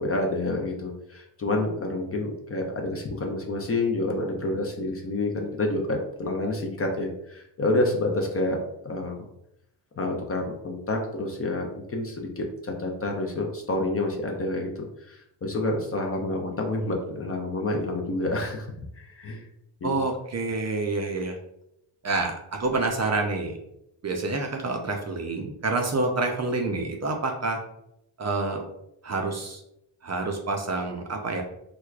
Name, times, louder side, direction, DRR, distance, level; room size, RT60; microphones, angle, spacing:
voice 1, 0.0-8.6 8.8-9.2 10.0-18.7 19.0-19.4 19.8-20.0, left 2 dB, 30° left, 1 dB, 0.4 m, -28 dB
voice 2, 19.8-21.4 22.0-23.6 24.0-27.6 28.2-28.6 29.0-29.6 30.0-31.4, right 3 dB, 35° right, 2 dB, 0.4 m, -28 dB
4.5 x 2.2 x 2.3 m, 0.80 s
wide cardioid pair, 120°, 49 cm